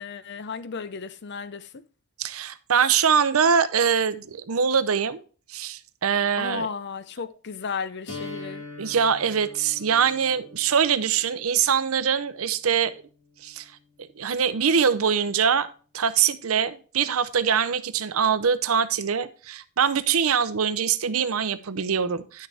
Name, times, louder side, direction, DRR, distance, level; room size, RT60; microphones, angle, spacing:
voice 1, 0.0-1.8 6.4-8.6, left 5 dB, 55° left, 0.6 m, -34 dB
voice 2, 2.2-5.2 5.5-6.7 8.8-13.0 13.4-13.7 14.2-15.7 15.9-22.5, right 7 dB, 80° right, 0.7 m, -23 dB
sound 1, 8.1-14.0, left 2 dB, 85° left, 4.3 m, -44 dB
10.5 x 6.5 x 3.4 m
head